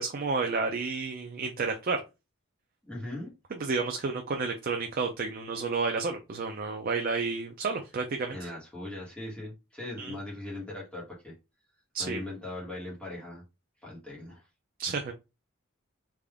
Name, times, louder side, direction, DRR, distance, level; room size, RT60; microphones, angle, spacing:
voice 1, 0.0-2.0 3.5-8.5 10.0-10.1 11.9-12.2 14.8-15.1, right 4 dB, 45° right, 0.5 m, -31 dB
voice 2, 2.8-3.3 8.3-11.3 12.0-13.4 13.8-14.4, left 1 dB, 5° left, 1.2 m, -39 dB
3.5 x 2.5 x 3.5 m
head